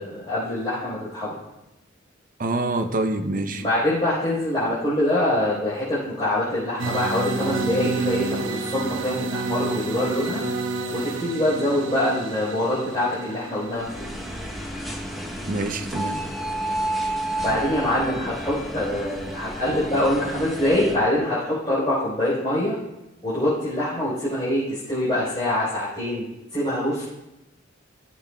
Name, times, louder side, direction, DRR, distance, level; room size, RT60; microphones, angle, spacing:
voice 1, 0.0-1.4 3.5-10.4 10.9-14.1 17.4-22.8 23.2-26.3 26.5-27.0, left 1 dB, 25° left, -11 dB, 4.0 m, -24 dB
voice 2, 2.4-3.6 15.4-16.2, right 2 dB, 45° right, 7 dB, 0.6 m, -26 dB
sound 1, 6.8-15.6, right 3 dB, 75° right, 0.9 m, -30 dB
sound 2, 13.7-21.0, right 1 dB, ahead, 0.9 m, -31 dB
17.0 x 7.5 x 2.3 m, 0.94 s
head